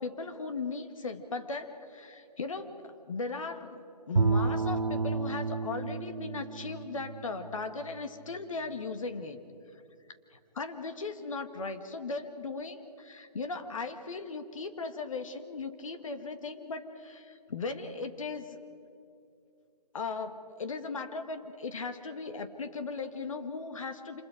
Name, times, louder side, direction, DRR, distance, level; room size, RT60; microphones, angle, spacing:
voice 1, 0.0-9.4 10.3-18.6 19.9-24.2, left 4 dB, 55° left, 8 dB, 1.7 m, -37 dB
Bowed string instrument, 4.2-8.4, right 4 dB, 85° right, 1.2 m, -31 dB
26.5 x 20.5 x 5.1 m, 2.6 s
figure-of-eight pair, 160°, 21 cm